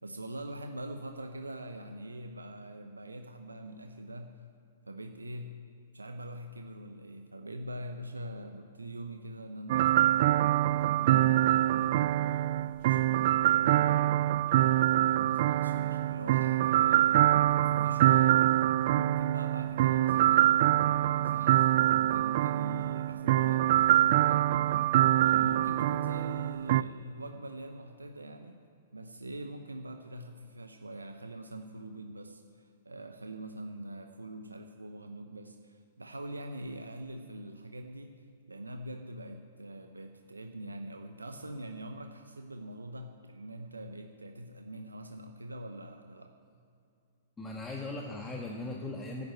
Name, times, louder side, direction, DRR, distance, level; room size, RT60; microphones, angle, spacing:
voice 1, 0.0-4.4 4.8-5.6 5.9-10.2 10.7-12.5 12.9-14.0 14.4-17.2 17.5-18.4 18.9-28.6 28.9-46.3, right 1 dB, 90° right, 5 dB, 0.9 m, -43 dB
sound 1, 9.7-26.8, right 13 dB, 50° right, 0.3 m, -25 dB
voice 2, 47.4-49.3, left 2 dB, 15° left, 0 dB, 1.5 m, -38 dB
11.5 x 9.5 x 9.2 m, 2.5 s
figure-of-eight pair, 110°, 0 cm